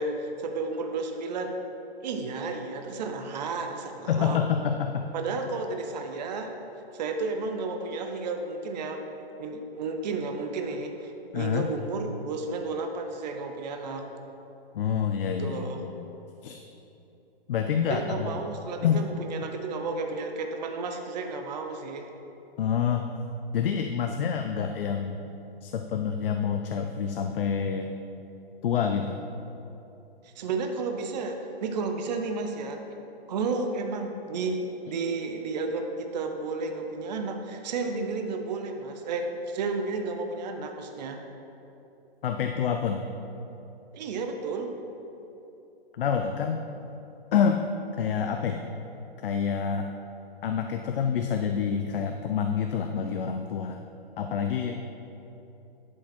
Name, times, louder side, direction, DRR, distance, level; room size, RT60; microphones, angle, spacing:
voice 1, 0.0-1.5 2.0-4.4 5.1-6.5 6.9-9.0 9.4-14.1 15.4-15.8 17.9-22.1 30.2-32.8 33.3-34.6 34.9-41.2 43.9-44.7, right 3 dB, 45° right, 4 dB, 0.7 m, -32 dB
voice 2, 4.1-5.1 11.3-11.7 14.7-16.1 16.4-16.6 17.5-18.3 18.8-19.0 22.6-23.0 23.5-25.2 25.6-27.9 28.6-29.2 42.2-43.1 46.0-46.7 47.3-47.6 48.0-48.6 49.2-49.9 50.4-53.8 54.2-54.8, left 7 dB, 65° left, 5 dB, 0.6 m, -27 dB
11.0 x 5.0 x 4.3 m, 3.0 s
hypercardioid pair, 155°, 30 cm